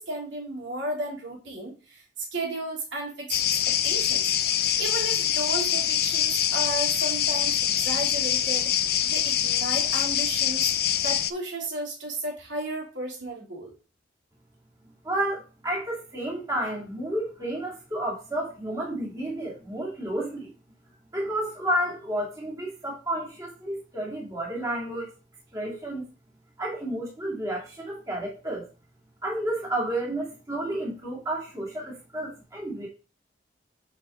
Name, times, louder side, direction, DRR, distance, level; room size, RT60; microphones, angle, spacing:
voice 1, 0.0-4.3 4.8-10.7 11.0-13.7, right 2 dB, 80° right, -2 dB, 2.9 m, -34 dB
sound 1, 3.3-11.3, left 10 dB, 55° left, 0.5 m, -24 dB
voice 2, 15.0-20.5 21.1-25.1 25.5-26.0 26.6-28.7 29.2-32.9, right 1 dB, 20° right, -4 dB, 2.3 m, -31 dB
8.1 x 4.5 x 3.8 m, 0.33 s
head